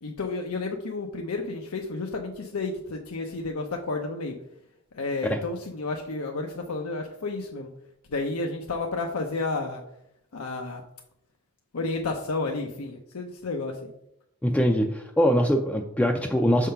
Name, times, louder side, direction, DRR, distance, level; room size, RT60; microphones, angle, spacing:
voice 1, 0.0-4.3 4.9-7.7 8.1-9.8 10.3-10.8 11.7-13.9, left 3 dB, 90° left, 2 dB, 0.7 m, -31 dB
voice 2, 14.4-16.7, equal, 5° left, 2 dB, 0.4 m, -23 dB
6.4 x 3.7 x 5.6 m, 0.78 s
head